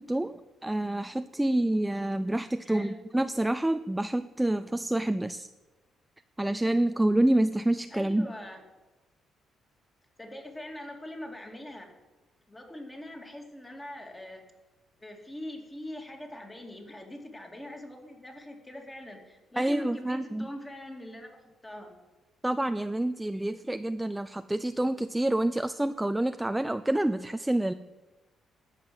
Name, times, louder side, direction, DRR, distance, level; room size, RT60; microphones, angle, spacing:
voice 1, 0.0-5.5 6.4-8.3 19.6-20.5 22.4-27.7, right 1 dB, 10° right, 11 dB, 0.4 m, -28 dB
voice 2, 2.6-3.0 7.9-8.6 10.2-11.9 12.5-14.4 15.0-22.0, left 1 dB, 15° left, 2 dB, 2.3 m, -42 dB
13.0 x 5.7 x 7.6 m, 1.1 s
cardioid pair, 90°, 0 cm